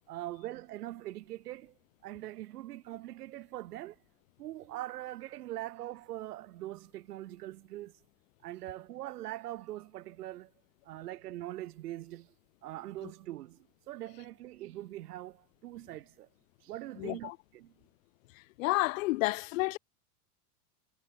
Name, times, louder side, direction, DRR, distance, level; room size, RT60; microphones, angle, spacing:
voice 1, 0.1-1.7 2.0-4.0 4.4-8.0 8.4-10.5 10.8-12.3 12.6-16.3 16.6-17.7, right 15 dB, 75° right, 3.2 m, -42 dB
voice 2, 17.0-17.4 18.3-19.8, left 21 dB, 60° left, 2.6 m, -31 dB
supercardioid pair, 150°, 46 cm